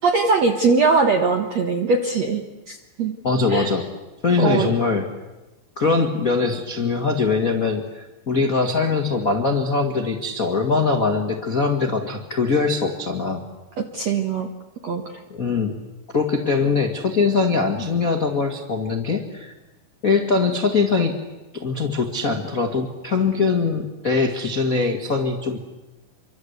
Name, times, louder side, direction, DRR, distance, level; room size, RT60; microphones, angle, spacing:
voice 1, 0.0-3.1 3.5-3.8 4.4-4.7 13.8-14.5 14.8-15.0, right 4 dB, 70° right, 5 dB, 1.6 m, -21 dB
voice 2, 3.2-3.8 4.2-5.0 5.8-13.4 15.3-15.7 16.1-19.5 20.0-21.2 21.5-25.6, left 4 dB, 65° left, 3 dB, 0.8 m, -22 dB
27.0 x 24.5 x 8.2 m, 1.1 s
omnidirectional pair, 5.1 m